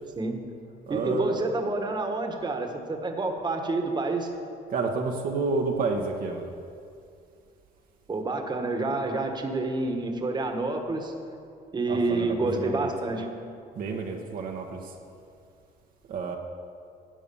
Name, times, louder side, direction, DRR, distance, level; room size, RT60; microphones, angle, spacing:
voice 1, 0.1-0.5 0.9-4.3 8.1-11.1 11.7-13.3, right 2 dB, 25° right, 4 dB, 1.5 m, -28 dB
voice 2, 0.9-1.4 4.7-6.5 11.9-12.9 13.8-14.9 16.1-16.4, right 4 dB, 55° right, 1 dB, 1.2 m, -30 dB
12.5 x 8.5 x 7.0 m, 2.4 s
cardioid pair, 110°, 17 cm